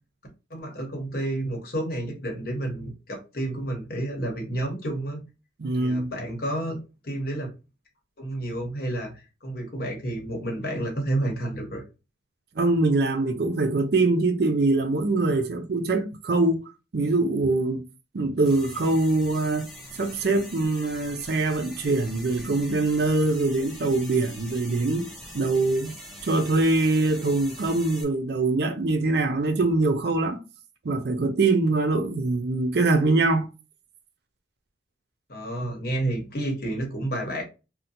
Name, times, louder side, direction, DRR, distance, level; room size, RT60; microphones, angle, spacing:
voice 1, 0.5-5.2 5.7-6.8 7.0-7.5 8.2-11.8 35.3-37.4, right 1 dB, 50° left, 1.1 m, -30 dB
voice 2, 5.6-6.1 12.6-16.6 16.9-17.8 18.1-19.7 20.0-25.1 25.3-25.9 26.2-30.4 30.8-33.5, right 2 dB, 55° right, 0.5 m, -23 dB
sound 1, 18.4-28.0, equal, ahead, 0.6 m, -43 dB
2.7 x 2.1 x 4.0 m
head